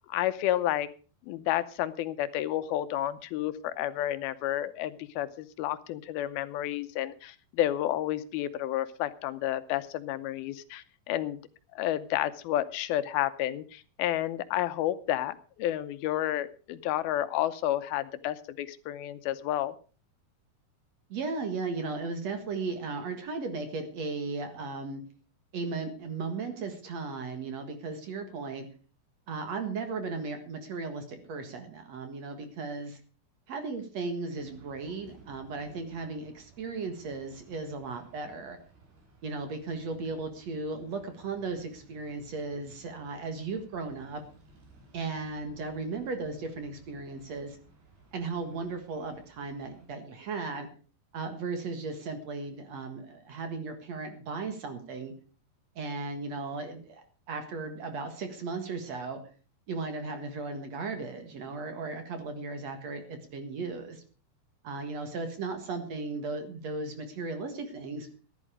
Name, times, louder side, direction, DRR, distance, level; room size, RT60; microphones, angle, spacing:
voice 1, 0.1-0.9 1.3-11.4 11.7-19.7, left 13 dB, 85° left, 12 dB, 2.7 m, -31 dB
voice 2, 21.1-25.0 25.5-28.7 29.3-33.0 33.5-38.6 39.2-44.2 44.9-47.6 48.1-50.7 51.1-55.1 55.8-59.2 59.7-64.0 64.6-68.1, right 4 dB, 50° right, 7 dB, 2.5 m, -36 dB
sound 1, 34.3-49.9, right 2 dB, 80° right, 5.9 m, -58 dB
15.0 x 11.5 x 4.9 m, 0.37 s
omnidirectional pair, 4.3 m